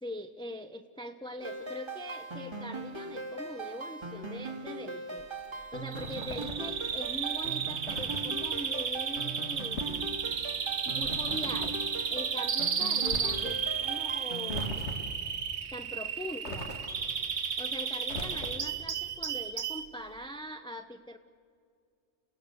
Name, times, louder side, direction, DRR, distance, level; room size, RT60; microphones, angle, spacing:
voice 1, 0.0-10.1 10.8-11.8 12.1-14.8 15.7-16.7 17.4-21.2, left 1 dB, 5° left, 7 dB, 0.5 m, -42 dB
sound 1, 1.4-14.7, right 3 dB, 20° right, 2.2 m, -40 dB
sound 2, 5.9-6.7 7.9-8.3 9.5-10.1 11.0-11.8 13.0-13.6 14.5-15.2 16.4-17.1 18.0-18.8, left 1 dB, 65° left, 2.5 m, -40 dB
Bird vocalization bird call bird song, 5.9-19.9, right 6 dB, 65° right, 1.3 m, -33 dB
28.5 x 16.5 x 8.2 m, 2.4 s
omnidirectional pair, 1.3 m